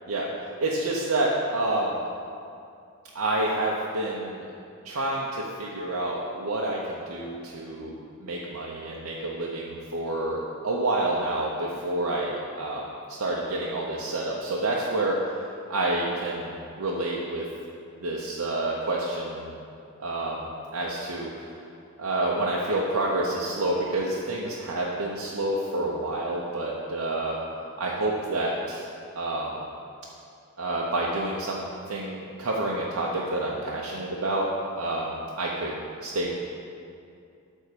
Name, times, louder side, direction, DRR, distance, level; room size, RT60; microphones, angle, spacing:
voice 1, 0.6-2.0 3.1-4.5 4.8-15.2 15.7-17.4 18.0-19.5 20.0-21.3 22.0-27.4 27.8-28.9 29.2-29.6 30.6-34.5 34.8-35.7 36.0-36.3, right 2 dB, 85° right, -4 dB, 0.8 m, -28 dB
8.7 x 3.6 x 6.7 m, 2.5 s
head